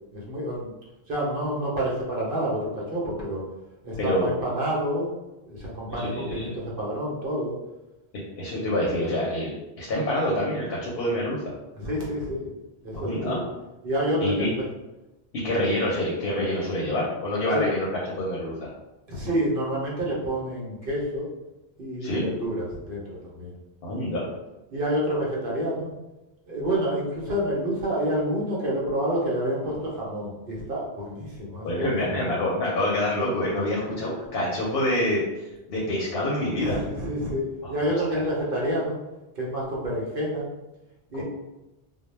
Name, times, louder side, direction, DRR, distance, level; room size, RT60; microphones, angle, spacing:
voice 1, 0.1-0.7 1.1-3.4 3.8-5.1 5.5-7.6 11.8-12.5 12.8-13.4 13.8-14.6 17.5-17.7 19.1-21.3 21.8-23.5 24.7-25.9 26.5-32.0 36.3-39.0 39.3-40.5 41.1-41.2, equal, 60° right, -4 dB, 0.9 m, -28 dB
voice 2, 5.9-6.5 8.4-9.5 9.8-11.4 12.9-13.4 14.2-14.5 15.4-18.7 22.0-22.3 23.8-24.2 31.6-35.2 35.7-36.8 37.6-37.7 38.1-38.2 41.1-41.2, left 1 dB, 65° left, -4 dB, 0.8 m, -26 dB
2.1 x 2.1 x 3.1 m, 1.0 s
omnidirectional pair, 1.1 m